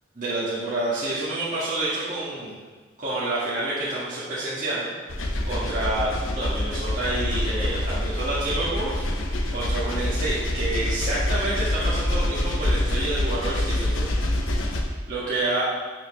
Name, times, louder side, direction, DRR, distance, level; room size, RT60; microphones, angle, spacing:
voice 1, 0.2-2.5 3.0-4.9 5.5-9.0 9.5-14.2 15.1-15.6, right 2 dB, 40° right, -10 dB, 1.9 m, -28 dB
sound 1, 5.1-14.8, left 1 dB, 90° left, 1.0 m, -26 dB
12.0 x 5.8 x 3.3 m, 1.4 s
head